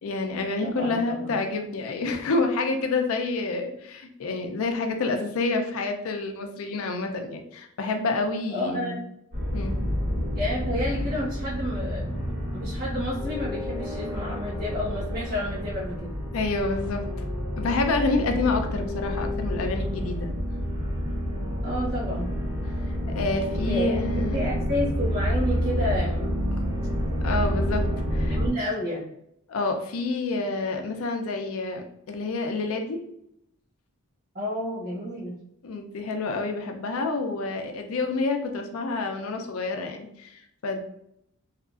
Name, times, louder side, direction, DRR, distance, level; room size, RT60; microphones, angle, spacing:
voice 1, 0.0-9.0 9.5-9.7 16.3-17.0 17.6-20.3 23.1-24.4 27.2-27.8 28.1-28.4 29.5-33.0 35.6-40.8, left 3 dB, 65° left, 4 dB, 0.4 m, -28 dB
voice 2, 0.6-1.4 8.5-9.0 10.3-12.1 12.5-16.0 21.6-22.3 23.5-26.3 28.3-29.1 34.3-35.4, left 1 dB, 45° right, -8 dB, 1.2 m, -30 dB
sound 1, 9.3-28.5, equal, 80° right, 1.3 m, -29 dB
2.8 x 2.4 x 2.3 m, 0.76 s
head